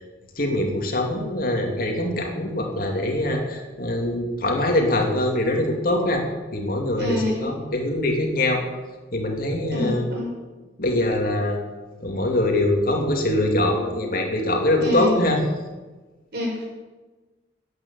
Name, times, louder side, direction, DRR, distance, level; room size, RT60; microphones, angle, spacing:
voice 1, 0.4-6.2 6.5-8.6 9.1-10.1 10.8-11.6 12.0-15.4, left 1 dB, 55° left, 1 dB, 2.7 m, -23 dB
voice 2, 7.0-7.4 9.7-10.3 14.8-15.1 16.3-16.7, left 2 dB, 60° right, -2 dB, 6.4 m, -26 dB
13.0 x 9.6 x 8.6 m, 1.2 s
head